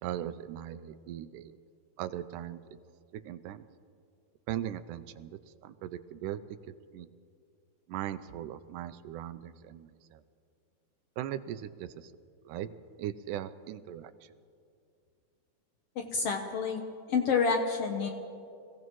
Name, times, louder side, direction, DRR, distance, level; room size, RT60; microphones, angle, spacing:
voice 1, 0.0-1.6 2.0-2.6 3.1-3.7 4.5-6.4 6.9-7.1 7.9-10.2 11.2-12.1 12.5-12.7 13.0-14.1, right 11 dB, 90° right, 13 dB, 2.1 m, -39 dB
voice 2, 16.0-16.8 17.1-18.1, left 5 dB, 70° left, 3 dB, 1.5 m, -28 dB
25.5 x 16.5 x 3.1 m, 2.5 s
omnidirectional pair, 3.6 m